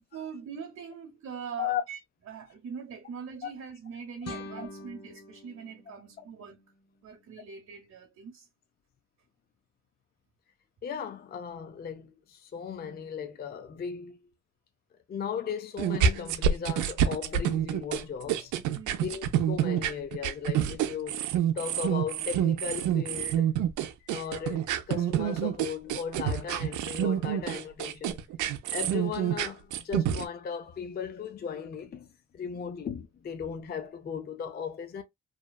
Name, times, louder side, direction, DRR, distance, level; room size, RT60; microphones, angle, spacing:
voice 1, 0.1-2.0 2.3-6.6 7.0-8.5 18.7-19.2 32.5-32.7, right 6 dB, 60° right, 0.9 m, -42 dB
sound 1, 4.2-7.3, left 2 dB, 55° left, 0.8 m, -46 dB
voice 2, 10.8-14.2 15.1-18.5 19.0-23.6 24.0-28.2 28.7-32.1 32.3-35.0, left 7 dB, 35° left, 0.4 m, -36 dB
sound 2, 15.8-30.3, right 9 dB, 80° right, 0.5 m, -27 dB
2.7 x 2.2 x 2.2 m
cardioid pair, 90°, 30 cm